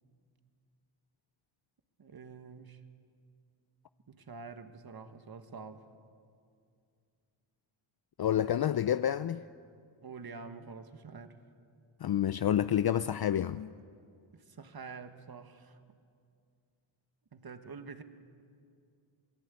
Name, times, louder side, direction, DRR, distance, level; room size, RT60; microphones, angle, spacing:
voice 1, 2.0-2.8 4.1-5.9 10.0-11.4 14.3-15.8 17.3-18.0, right 4 dB, 45° right, 1.7 m, -47 dB
voice 2, 8.2-9.4 12.0-13.7, left 10 dB, 50° left, 0.5 m, -29 dB
27.5 x 18.0 x 8.4 m
cardioid pair, 85°, 49 cm